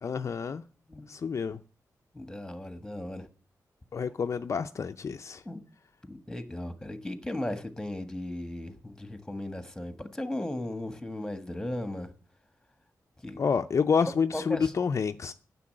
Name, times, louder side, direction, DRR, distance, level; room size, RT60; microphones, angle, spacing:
voice 1, 0.0-0.6 1.1-1.6 3.9-5.4 13.4-15.3, left 6 dB, 50° left, 0.5 m, -28 dB
voice 2, 2.1-3.2 5.4-5.6 6.1-12.1 13.2-13.4 14.3-14.7, left 1 dB, 10° left, 1.4 m, -36 dB
9.8 x 7.0 x 8.7 m
wide cardioid pair, 140°, 6 cm